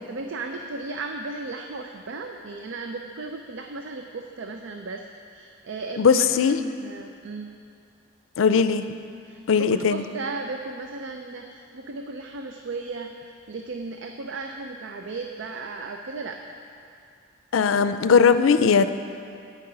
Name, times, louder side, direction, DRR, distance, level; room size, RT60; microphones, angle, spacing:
voice 1, 0.1-7.5 9.2-16.5, right 3 dB, 65° right, 4 dB, 0.5 m, -35 dB
voice 2, 6.0-6.6 8.4-8.8 9.5-10.0 17.5-18.9, left 6 dB, 80° left, 11 dB, 0.4 m, -19 dB
8.6 x 5.9 x 7.9 m, 2.4 s
head